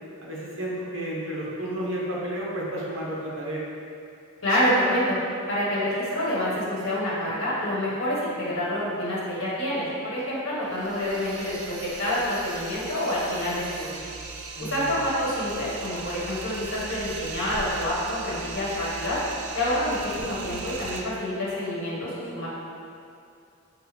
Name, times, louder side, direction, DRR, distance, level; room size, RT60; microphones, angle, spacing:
voice 1, 0.2-3.6 14.6-14.9, right 1 dB, 60° right, -5 dB, 0.9 m, -32 dB
voice 2, 4.4-5.2 5.5-14.0 14.6-19.2 19.5-22.5, left 1 dB, 60° left, -8 dB, 1.4 m, -27 dB
sound 1, 10.6-21.0, right 4 dB, 85° right, 0.5 m, -38 dB
6.4 x 2.3 x 3.4 m, 2.5 s
head